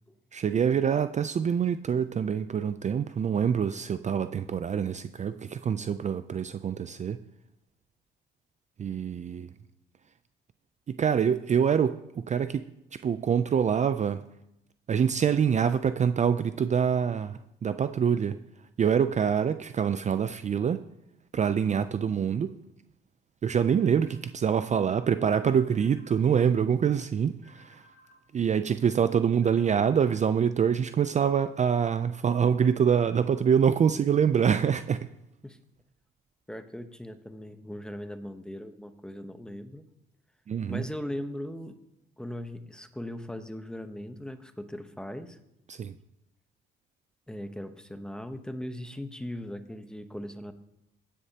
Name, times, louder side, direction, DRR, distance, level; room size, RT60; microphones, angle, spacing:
voice 1, 0.3-7.2 8.8-9.5 10.9-12.7 13.0-14.2 14.9-18.4 18.8-20.8 21.3-22.5 23.4-27.8 28.3-35.1 40.5-40.8 45.7-45.9, right 7 dB, 35° right, 11 dB, 0.4 m, -25 dB
sound 1, 23.4-24.2 25.4-26.2 27.4-28.2 29.4-30.2, left 1 dB, 70° right, 2.5 m, -58 dB
voice 2, 36.5-39.8 40.7-41.8 42.2-45.4 47.3-50.5, left 1 dB, 5° left, 9 dB, 0.9 m, -39 dB
15.5 x 10.0 x 2.9 m, 0.84 s
cardioid pair, 90°, 20 cm